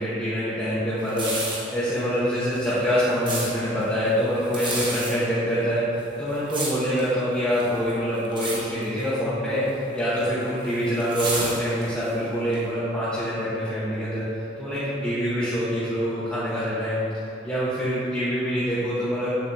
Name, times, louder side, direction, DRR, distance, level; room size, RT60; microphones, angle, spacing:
voice 1, 0.0-1.3 1.7-5.8 6.2-9.6 9.9-14.2 14.6-17.1 17.4-19.3, equal, 5° left, -13 dB, 1.3 m, -25 dB
sound 1, 1.0-1.7 2.5-3.5 4.4-5.1 5.9-7.1 7.5-7.9 8.2-8.6 8.8-9.1 10.0-12.1 12.5-12.6, right 2 dB, 25° right, 1.5 m, -30 dB
8.5 x 7.6 x 2.9 m, 3.0 s
head